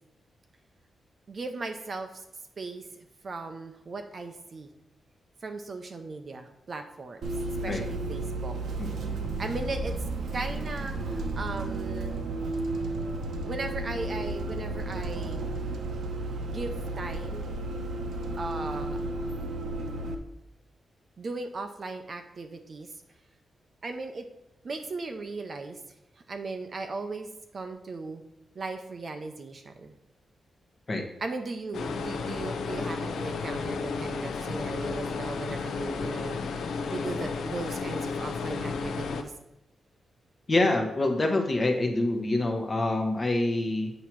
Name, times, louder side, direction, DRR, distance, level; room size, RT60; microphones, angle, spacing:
voice 1, 1.3-2.2 2.6-2.9 3.2-4.7 5.4-7.3 7.6-8.6 9.4-10.0 10.3-12.2 13.4-15.4 16.4-17.5 18.3-19.0 21.2-22.9 23.8-24.3 24.6-25.8 26.3-28.2 28.6-29.9 31.2-39.3, right 3 dB, 35° right, 6 dB, 0.5 m, -37 dB
Bus, 7.2-20.1, right 2 dB, 65° right, 0.8 m, -33 dB
voice 2, 8.8-9.4 30.9-31.0 40.5-43.9, left 2 dB, 25° left, 3 dB, 0.9 m, -26 dB
sound 1, 31.7-39.2, left 4 dB, 80° left, 0.6 m, -32 dB
8.3 x 3.0 x 5.9 m, 0.89 s
wide cardioid pair, 175°, 0 cm